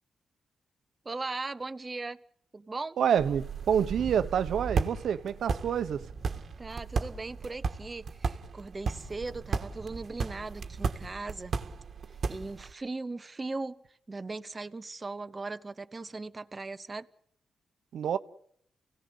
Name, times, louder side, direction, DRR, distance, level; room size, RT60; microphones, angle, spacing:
voice 1, 1.0-2.2 2.5-3.0 6.6-11.5 12.3-13.8 14.1-17.1, right 3 dB, 30° right, 1.0 m, -38 dB
voice 2, 3.0-6.0 17.9-18.2, right 8 dB, 80° right, 1.1 m, -27 dB
sound 1, 3.2-12.7, right 5 dB, 55° right, 1.6 m, -35 dB
29.0 x 17.0 x 8.3 m
cardioid pair, 90°, 0 cm